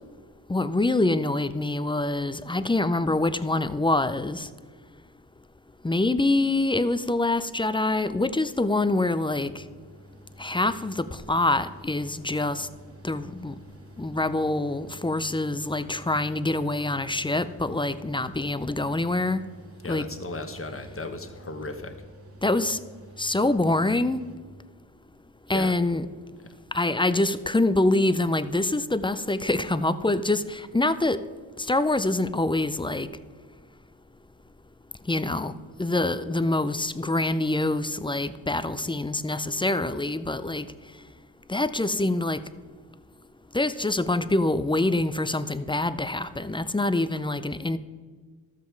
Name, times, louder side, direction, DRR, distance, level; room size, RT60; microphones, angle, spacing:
voice 1, 0.5-4.5 5.8-9.6 10.4-12.7 13.0-13.5 14.0-19.4 19.8-20.1 22.4-22.8 23.2-24.2 25.5-26.1 26.7-31.2 31.6-33.1 35.1-35.5 35.8-40.7 41.5-42.4 43.5-47.8, left 2 dB, 10° left, 0.4 m, -25 dB
Mechanical fan, 9.0-24.4, equal, 30° right, 1.3 m, -49 dB
voice 2, 19.8-21.9 25.5-25.7, left 2 dB, 30° left, 1.3 m, -35 dB
12.5 x 7.5 x 4.6 m
cardioid pair, 65°, 45 cm